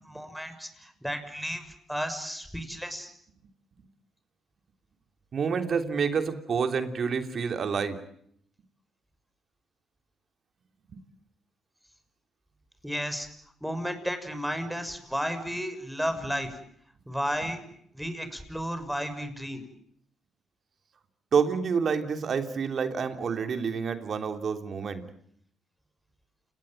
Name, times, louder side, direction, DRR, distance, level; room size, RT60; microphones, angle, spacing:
voice 1, 0.1-1.6 1.9-3.1 12.8-13.3 13.6-16.5 17.1-17.6 17.9-19.6, equal, ahead, 9 dB, 6.1 m, -33 dB
voice 2, 5.3-8.0 10.9-11.0 21.3-25.0, right 6 dB, 55° right, 7 dB, 3.3 m, -28 dB
30.0 x 19.0 x 9.1 m, 0.69 s
cardioid pair, 75°, 0 cm